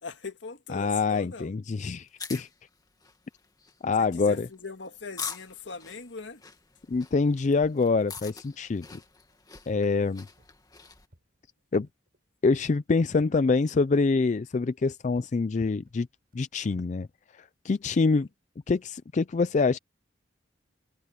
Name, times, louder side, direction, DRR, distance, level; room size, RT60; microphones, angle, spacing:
voice 1, 0.0-1.5 4.0-6.4 18.1-18.2, left 5 dB, 75° left, 1.9 m, -40 dB
voice 2, 0.7-2.5 3.8-4.5 6.9-9.0 9.7-10.3 11.7-11.9 12.4-16.1 16.3-17.1 17.3-18.3 18.7-19.8, left 4 dB, 40° left, 0.4 m, -25 dB
sound 1, 2.0-11.1, left 5 dB, 20° left, 1.9 m, -45 dB
sound 2, 6.9-16.9, equal, 50° right, 5.1 m, -65 dB
head